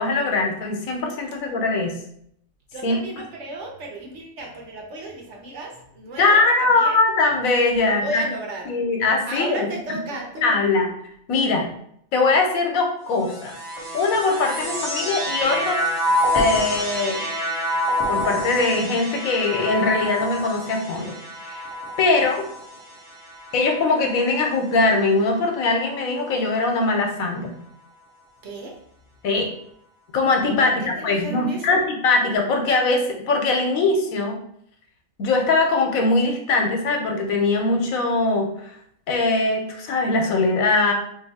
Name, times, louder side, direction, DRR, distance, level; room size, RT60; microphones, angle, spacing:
voice 1, 0.0-1.9 2.8-3.0 6.2-8.2 8.7-9.7 10.4-10.9 11.3-11.7 12.1-13.5 13.9-15.8 16.3-17.2 18.1-21.1 21.5-21.6 22.0-22.4 23.5-27.6 29.2-29.5 30.1-34.4 35.2-38.5 39.1-40.9, left 3 dB, 80° left, 3 dB, 1.1 m, -21 dB
voice 2, 2.7-7.0 7.8-8.7 9.3-10.6 28.4-28.8 30.6-31.8, right 2 dB, 60° right, 0 dB, 1.0 m, -34 dB
sound 1, 13.1-24.6 25.4-26.1, equal, 30° right, 0.6 m, -28 dB
2.7 x 2.6 x 4.1 m, 0.68 s
omnidirectional pair, 1.4 m